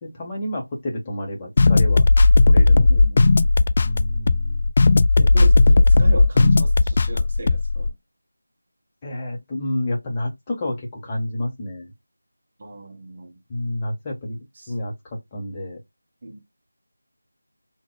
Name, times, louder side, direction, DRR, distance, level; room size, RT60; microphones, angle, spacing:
voice 1, 0.0-2.0 2.5-3.0 3.8-4.7 9.0-11.9 13.5-14.4 14.7-15.8, left 1 dB, 20° left, 1.4 m, -29 dB
sound 1, 1.6-7.9, left 3 dB, 35° left, 0.3 m, -15 dB
voice 2, 2.9-3.6 5.2-7.9 12.6-13.3 14.6-14.7 16.2-16.4, right 2 dB, 35° right, 1.1 m, -35 dB
5.1 x 2.8 x 2.3 m
figure-of-eight pair, 170°, 0 cm